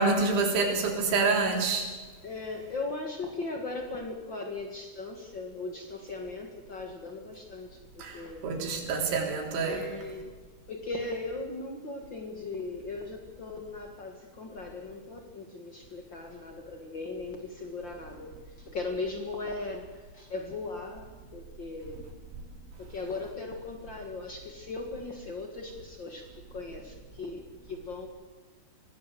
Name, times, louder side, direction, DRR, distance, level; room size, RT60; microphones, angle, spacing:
voice 1, 0.0-1.9 8.0-9.9, right 4 dB, 80° right, 2 dB, 5.9 m, -27 dB
voice 2, 2.2-8.5 9.6-10.3 10.7-22.1 22.8-28.1, left 3 dB, 90° left, 3 dB, 1.0 m, -38 dB
25.0 x 18.0 x 7.7 m, 1.3 s
omnidirectional pair, 5.3 m